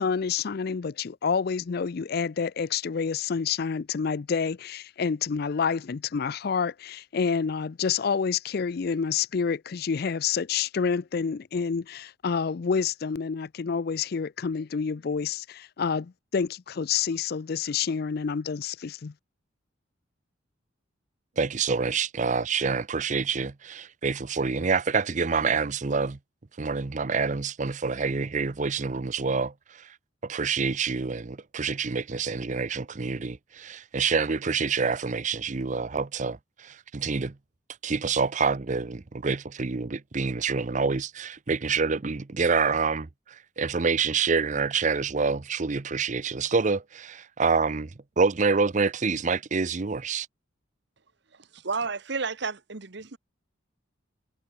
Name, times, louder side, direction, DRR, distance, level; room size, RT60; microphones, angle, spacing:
voice 1, 0.0-19.1, left 6 dB, 50° left, 0.4 m, -28 dB
voice 2, 21.4-26.2 26.6-29.9 30.2-37.3 37.8-43.1 43.6-47.9 48.2-50.3, right 5 dB, 40° right, 0.6 m, -27 dB
voice 3, 51.5-53.2, right 4 dB, 60° right, 1.2 m, -31 dB
head